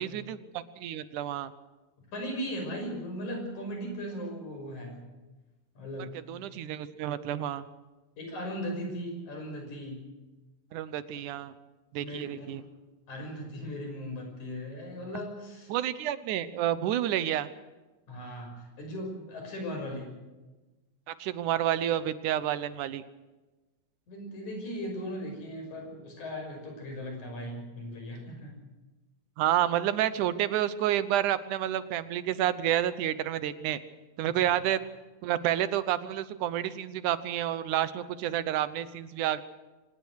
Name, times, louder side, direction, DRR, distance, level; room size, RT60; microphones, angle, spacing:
voice 1, 0.0-1.5 6.3-7.7 10.7-11.5 11.9-12.6 15.7-17.5 21.1-23.0 29.4-33.8 34.2-34.8 35.2-39.4, right 11 dB, 85° right, 14 dB, 2.5 m, -29 dB
voice 2, 2.1-5.1 5.8-6.1 8.2-10.0 12.0-12.7 13.1-15.8 18.1-20.2 24.1-28.6 34.3-34.4, equal, 70° left, 3 dB, 7.3 m, -38 dB
24.5 x 19.5 x 6.4 m, 1.2 s
omnidirectional pair, 3.5 m